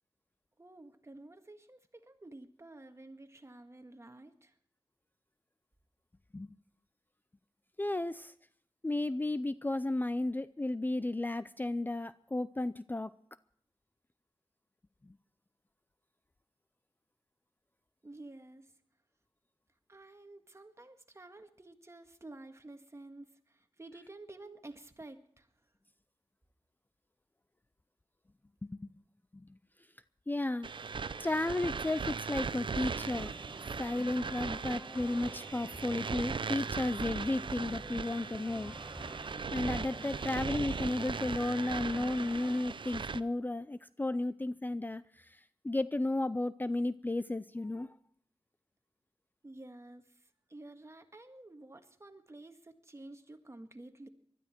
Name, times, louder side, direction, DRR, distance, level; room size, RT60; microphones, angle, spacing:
voice 1, 0.6-4.6 18.0-18.7 19.9-25.5 49.4-54.1, right 2 dB, 30° right, 6 dB, 1.7 m, -51 dB
voice 2, 7.8-8.3 8.8-13.1 15.0-15.1 28.6-28.9 29.3-29.6 30.3-30.7 31.2-33.3 33.8-38.7 39.5-48.0, left 2 dB, 20° left, 14 dB, 0.5 m, -33 dB
sound 1, 30.6-43.2, right 5 dB, 60° right, 0.5 m, -39 dB
sound 2, 32.8-42.6, equal, ahead, 1.3 m, -50 dB
20.5 x 12.5 x 4.5 m, 0.64 s
cardioid pair, 55°, 9 cm